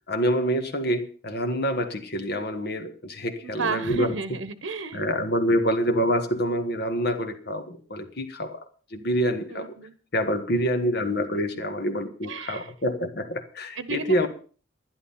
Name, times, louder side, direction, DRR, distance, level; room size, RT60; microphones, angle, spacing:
voice 1, 0.1-4.1 4.9-8.6 8.9-9.8 10.1-14.3, equal, 55° left, 7 dB, 1.7 m, -26 dB
voice 2, 3.4-5.0 5.5-5.6 9.5-9.9 10.5-10.9 12.3-12.7 13.8-14.3, right 4 dB, 85° right, 13 dB, 1.1 m, -33 dB
11.0 x 11.0 x 5.6 m, 0.39 s
head